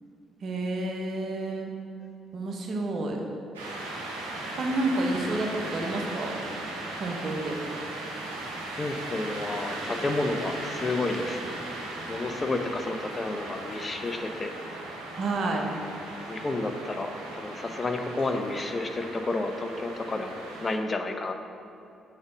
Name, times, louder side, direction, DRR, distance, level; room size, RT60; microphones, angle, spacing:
voice 1, 0.4-1.7 2.3-3.2 4.5-6.4 7.0-7.6 15.2-15.7, right 2 dB, 50° right, 1 dB, 1.2 m, -29 dB
sound 1, 3.5-20.7, right 2 dB, 80° right, 1.0 m, -37 dB
voice 2, 8.8-11.6 12.1-14.5 16.3-20.3 20.6-21.3, left 2 dB, 35° left, 5 dB, 0.8 m, -31 dB
6.5 x 5.3 x 6.1 m, 2.8 s
figure-of-eight pair, 45°, 0 cm